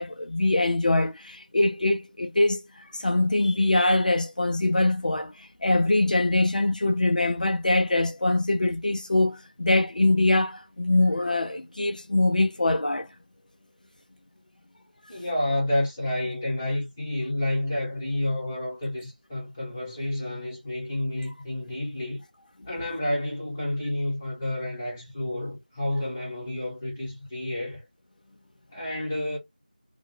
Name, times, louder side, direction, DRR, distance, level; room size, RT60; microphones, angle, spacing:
voice 1, 0.0-13.1, left 2 dB, 65° left, 0.4 m, -23 dB
voice 2, 15.1-22.2 22.7-27.8 28.7-29.4, left 1 dB, 15° left, 1.0 m, -30 dB
2.1 x 2.1 x 3.1 m
figure-of-eight pair, 175°, 5 cm